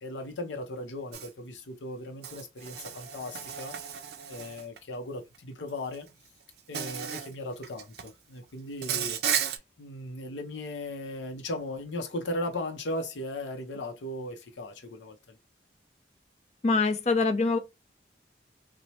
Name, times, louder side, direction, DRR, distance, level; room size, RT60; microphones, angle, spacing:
voice 1, 0.0-6.1 6.7-15.4, left 1 dB, 85° left, 0.6 m, -37 dB
Insect, 1.1-1.3 2.2-4.8 5.9-6.1 6.7-7.3 7.6-8.1 8.8-9.6, right 8 dB, 60° right, 0.4 m, -34 dB
voice 2, 16.6-17.6, left 3 dB, 40° left, 0.5 m, -24 dB
3.1 x 2.1 x 2.7 m
head